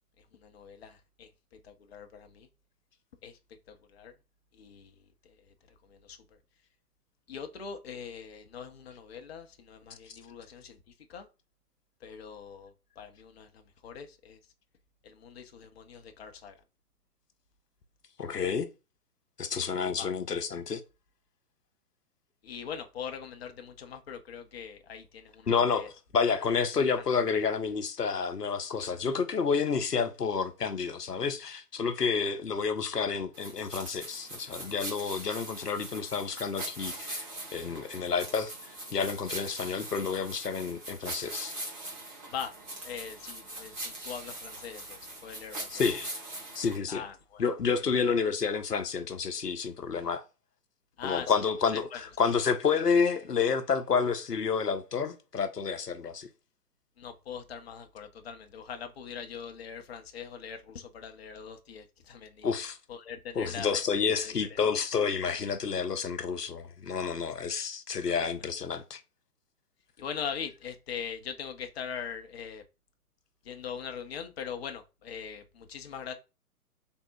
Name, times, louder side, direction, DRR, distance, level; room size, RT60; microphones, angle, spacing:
voice 1, 0.2-2.5 3.2-3.4 3.7-4.1 4.5-5.4 5.7-6.2 7.3-11.3 12.0-14.4 15.0-16.6 20.0-20.1 22.4-25.9 27.0-27.1 42.3-42.5 42.8-45.8 46.9-47.4 47.9-48.0 51.0-52.0 57.0-62.5 62.9-64.6 68.2-68.3 70.0-72.6 73.4-76.1, left 7 dB, 45° left, 0.5 m, -42 dB
voice 2, 18.2-18.7 19.4-20.8 25.5-37.3 37.5-38.5 38.9-41.5 45.7-46.1 46.5-47.0 47.4-50.2 51.0-56.3 62.4-62.8 63.4-69.0, left 5 dB, 90° left, 0.7 m, -29 dB
sound 1, 33.3-46.8, right 1 dB, 15° right, 0.8 m, -41 dB
3.5 x 2.0 x 4.3 m
figure-of-eight pair, 125°, 46 cm